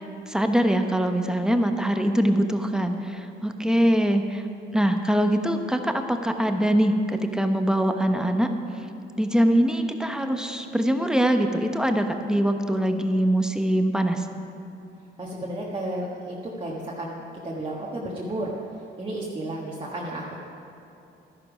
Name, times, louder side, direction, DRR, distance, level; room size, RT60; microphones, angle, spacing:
voice 1, 0.3-4.4 4.7-8.5 9.2-14.2, equal, 5° right, 5 dB, 0.9 m, -23 dB
voice 2, 15.2-18.5 19.0-20.4, right 1 dB, 25° right, -5 dB, 1.5 m, -32 dB
12.0 x 11.0 x 5.0 m, 2.8 s
cardioid pair, 90°, 20 cm